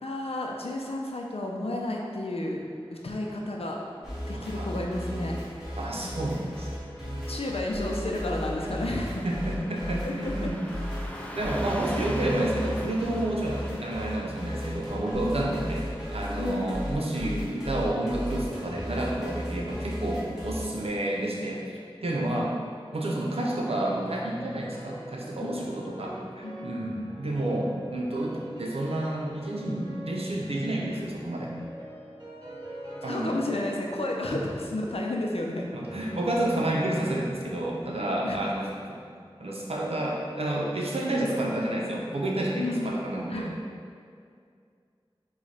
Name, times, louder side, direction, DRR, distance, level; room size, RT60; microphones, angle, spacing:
voice 1, 0.0-2.6 2.9-3.8 4.3-5.4 5.9-6.1 7.3-9.3 10.0-10.5 16.4-16.7 25.4-26.0 26.4-27.1 33.0-35.7 38.2-38.4 41.3-41.4 42.6-43.0 43.3-43.6, left 1 dB, 80° left, -1 dB, 0.5 m, -32 dB
sound 1, 4.0-20.9, equal, 5° right, 1.3 m, -36 dB
voice 2, 4.3-4.7 5.8-6.4 7.0-7.2 9.2-10.7 11.3-15.9 16.1-22.6 22.9-31.5 33.0-33.4 34.3-34.4 35.7-38.7 39.4-43.5, right 1 dB, 80° right, -3 dB, 0.7 m, -30 dB
Car passing by / Truck, 4.6-17.6, equal, 15° left, 0.3 m, -42 dB
sound 2, 23.4-41.2, right 1 dB, 40° right, 1.4 m, -44 dB
4.9 x 2.3 x 4.1 m, 2.3 s
wide cardioid pair, 40°, 10 cm